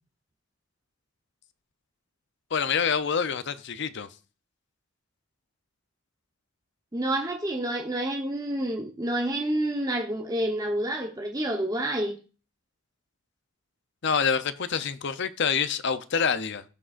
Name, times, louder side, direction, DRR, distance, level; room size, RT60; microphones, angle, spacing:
voice 1, 2.5-4.1 14.0-16.6, left 6 dB, 55° left, 0.6 m, -26 dB
voice 2, 6.9-12.1, right 1 dB, 15° right, 1.0 m, -28 dB
16.0 x 6.2 x 2.5 m
head